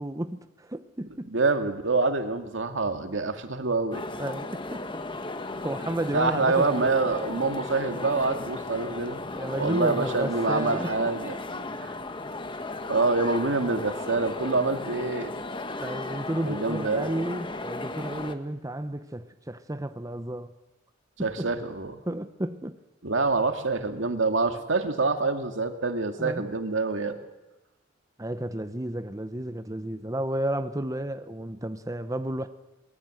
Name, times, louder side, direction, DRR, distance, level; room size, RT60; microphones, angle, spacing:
voice 1, 0.0-1.3 4.2-4.8 5.6-6.9 9.3-11.1 15.8-20.5 21.2-21.5 22.1-22.8 26.2-26.5 28.2-32.5, right 1 dB, 20° right, 0.9 m, -32 dB
voice 2, 1.2-4.0 6.1-9.2 9.6-11.3 11.8-11.9 12.9-15.3 16.5-17.1 21.2-22.0 23.0-27.2, right 3 dB, 90° right, 2.2 m, -26 dB
sound 1, 3.9-18.3, left 2 dB, 25° left, 1.3 m, -35 dB
24.5 x 21.0 x 7.8 m
head